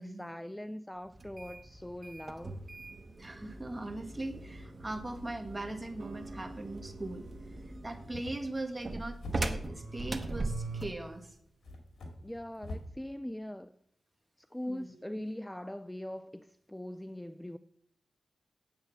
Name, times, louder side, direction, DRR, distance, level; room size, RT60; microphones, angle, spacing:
voice 1, 0.0-2.6 12.2-13.7 14.5-17.6, left 1 dB, 5° left, 0.3 m, -41 dB
sound 1, 1.1-11.0, right 2 dB, 30° right, 1.0 m, -40 dB
voice 2, 3.2-7.3 7.6-11.4 14.7-14.9 15.1-15.3, right 2 dB, 15° right, 1.7 m, -40 dB
Acoustic guitar, 6.0-10.1, right 3 dB, 60° right, 1.1 m, -54 dB
sound 2, 8.0-9.9 10.9-11.0 11.6-13.0, left 2 dB, 85° left, 2.6 m, -46 dB
9.1 x 7.8 x 7.0 m
wide cardioid pair, 135°, 0 cm